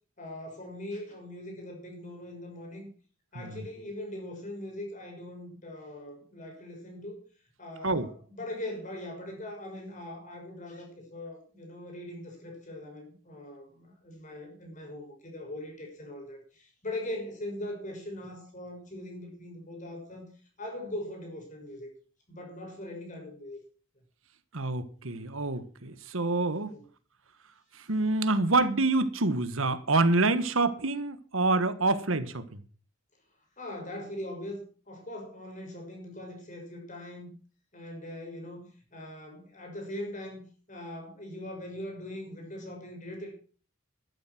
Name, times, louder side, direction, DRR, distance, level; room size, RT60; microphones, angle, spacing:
voice 1, 0.2-2.9 3.3-7.2 7.6-20.3 20.6-21.9 22.3-23.6 26.7-26.8 33.6-37.3 37.7-40.4 40.7-43.3, left 1 dB, 35° left, 6.3 m, -41 dB
voice 2, 24.5-26.8 27.7-32.6, right 2 dB, 75° right, 1.5 m, -27 dB
13.0 x 12.0 x 6.1 m
head